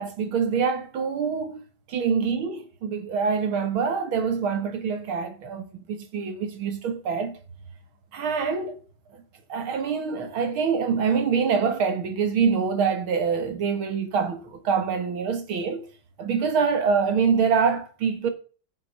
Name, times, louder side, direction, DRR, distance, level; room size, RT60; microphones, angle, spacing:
voice 1, 0.0-7.4 8.1-8.8 9.1-9.2 9.5-15.9 16.2-18.3, right 6 dB, 75° right, 2.4 m, -25 dB
9.9 x 6.7 x 6.6 m
omnidirectional pair, 2.3 m